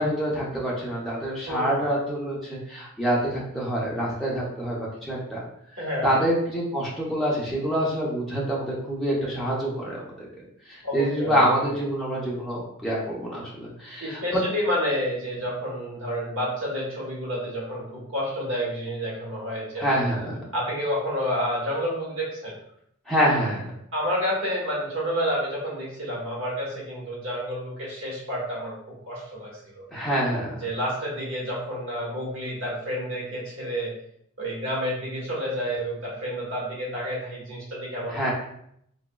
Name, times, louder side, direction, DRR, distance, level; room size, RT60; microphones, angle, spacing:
voice 1, 0.0-5.4 6.0-10.3 10.7-14.2 19.8-20.4 23.1-23.7 29.9-30.5 38.1-38.3, equal, ahead, -6 dB, 0.6 m, -26 dB
voice 2, 1.5-1.8 5.8-6.3 10.8-11.8 14.0-20.1 20.5-22.5 23.9-28.7 29.1-29.8 30.6-33.9 34.4-38.3, equal, 65° right, -5 dB, 1.2 m, -29 dB
3.4 x 2.0 x 2.2 m, 0.71 s
head